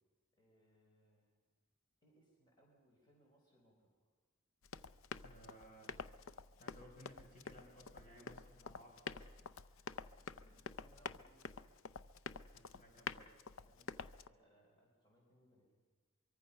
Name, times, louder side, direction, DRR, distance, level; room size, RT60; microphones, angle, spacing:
voice 1, 0.4-1.4 2.0-3.9 9.8-11.7 13.5-15.7, right 1 dB, 20° left, -2 dB, 4.8 m, -71 dB
Run, 4.6-14.3, left 5 dB, 65° left, 0.6 m, -49 dB
voice 2, 5.1-6.0 6.6-10.0 12.5-13.3, equal, 35° left, 0 dB, 5.1 m, -60 dB
24.0 x 24.0 x 5.7 m, 1.4 s
head